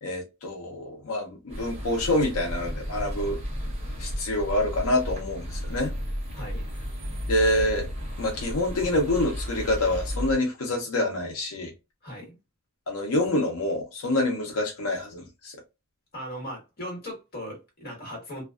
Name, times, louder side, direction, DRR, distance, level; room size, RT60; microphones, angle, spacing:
voice 1, 0.0-3.4 4.0-5.9 7.3-7.9 8.2-11.7 12.9-15.6, left 1 dB, 80° left, 0.6 m, -26 dB
sound 1, 1.5-10.3, equal, 30° right, 0.9 m, -33 dB
voice 2, 6.3-6.7 12.0-12.3 16.1-18.4, equal, 45° left, 1.2 m, -38 dB
2.5 x 2.2 x 2.3 m
head